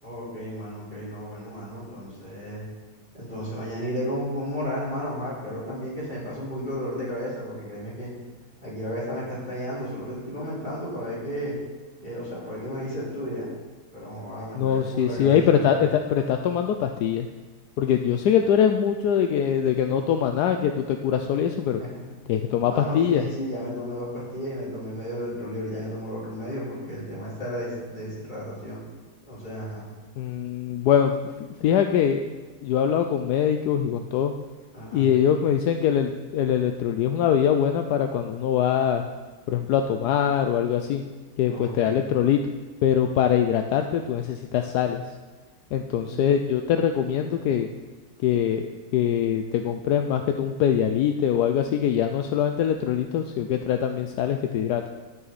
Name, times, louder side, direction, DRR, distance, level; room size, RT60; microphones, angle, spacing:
voice 1, 0.0-2.7 3.1-8.1 8.6-11.6 12.0-13.5 13.9-15.7 21.8-22.1 22.6-28.8 29.3-29.9 34.7-35.1 41.5-42.0 45.9-46.2, equal, 30° left, -8 dB, 4.6 m, -33 dB
voice 2, 14.5-17.3 17.8-21.8 22.3-23.2 30.2-32.2 32.6-34.3 34.9-39.0 39.5-41.0 41.4-42.4 42.8-45.0 45.7-47.7 48.2-48.7 48.9-54.8, left 9 dB, 80° left, 6 dB, 1.2 m, -23 dB
12.5 x 9.5 x 4.1 m, 1.3 s
omnidirectional pair, 1.7 m